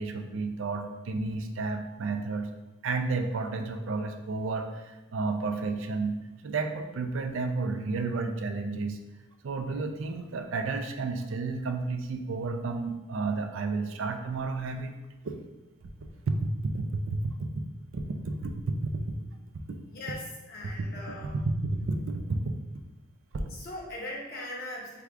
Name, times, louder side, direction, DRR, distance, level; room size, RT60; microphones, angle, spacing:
voice 1, 0.0-2.5 2.8-6.1 6.4-9.0 9.4-14.9 15.2-15.4 15.8-15.9 16.3-17.3 17.9-18.8 20.8-20.9 21.6-22.5, right 3 dB, 60° right, 5 dB, 0.4 m, -31 dB
voice 2, 19.9-21.4 23.5-25.0, left 1 dB, 45° left, -4 dB, 0.9 m, -40 dB
4.8 x 2.3 x 3.6 m, 1.1 s
head